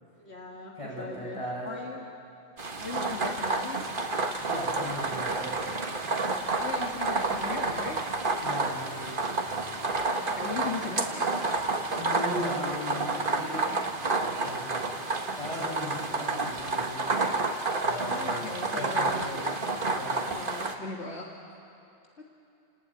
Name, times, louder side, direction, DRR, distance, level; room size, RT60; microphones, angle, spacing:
voice 1, 0.2-1.4 1.6-2.0 2.8-3.9 6.6-8.0 9.9-11.3 18.0-19.6 20.3-21.3 22.2-22.3, left 4 dB, 70° left, -1 dB, 2.1 m, -38 dB
voice 2, 0.8-1.7 4.5-5.5 8.4-9.2 11.9-13.5 14.1-14.8 15.3-17.1 17.7-18.4 18.7-19.4 19.9-20.2, left 1 dB, 25° left, -4 dB, 7.9 m, -37 dB
sound 1, 2.6-20.7, right 3 dB, 50° right, 1.6 m, -30 dB
30.0 x 19.0 x 9.4 m, 2.8 s
omnidirectional pair, 1.2 m